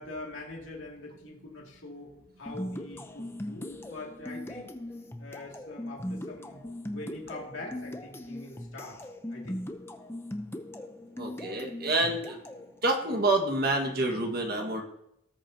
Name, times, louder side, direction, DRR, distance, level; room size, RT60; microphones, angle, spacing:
voice 1, 0.0-4.7 5.2-6.6 6.9-9.6, left 2 dB, 75° left, -1 dB, 2.3 m, -43 dB
sound 1, 2.5-12.7, left 1 dB, 10° left, 0.6 m, -40 dB
voice 2, 11.2-12.4 12.8-14.8, right 2 dB, 50° right, 2 dB, 1.7 m, -27 dB
18.0 x 6.7 x 2.8 m, 0.80 s
head